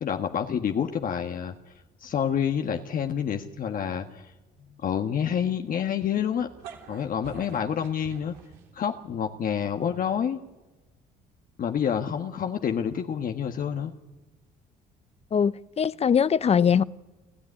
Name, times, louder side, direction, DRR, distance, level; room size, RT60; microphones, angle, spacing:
voice 1, 0.0-1.5 2.0-4.3 4.8-6.5 6.9-8.3 8.7-10.4 11.6-13.9, left 8 dB, 50° left, 1.4 m, -28 dB
sound 1, 6.4-9.0, right 7 dB, 85° right, 3.2 m, -46 dB
voice 2, 15.3-16.8, left 7 dB, 35° left, 0.8 m, -22 dB
29.5 x 13.5 x 9.7 m
supercardioid pair, 75°, 18 cm